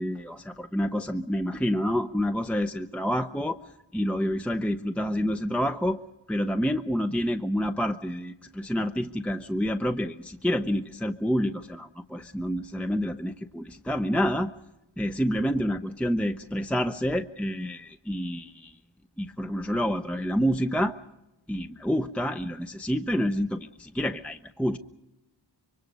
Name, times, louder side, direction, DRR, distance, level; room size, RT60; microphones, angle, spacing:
voice 1, 0.0-3.6 3.9-6.0 6.3-14.5 15.0-18.8 19.2-21.0 21.5-24.8, equal, 5° left, 7 dB, 0.7 m, -28 dB
25.5 x 23.5 x 5.3 m, 0.98 s
wide cardioid pair, 60°, 46 cm